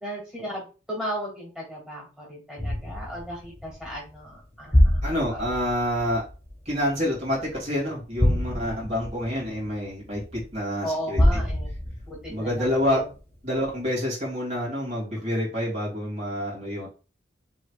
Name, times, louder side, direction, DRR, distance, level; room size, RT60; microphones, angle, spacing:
voice 1, 0.0-5.0 5.3-5.4 10.8-11.7 12.1-13.0, equal, 5° right, -4 dB, 2.3 m, -35 dB
sound 1, 2.6-7.6 8.1-10.5 11.1-13.2 13.6-13.7, left 1 dB, 10° left, 1.5 m, -26 dB
voice 2, 5.0-6.2 6.6-11.4 12.3-13.0 13.4-16.9, equal, 35° right, -4 dB, 2.6 m, -28 dB
6.2 x 3.3 x 2.3 m, 0.34 s
head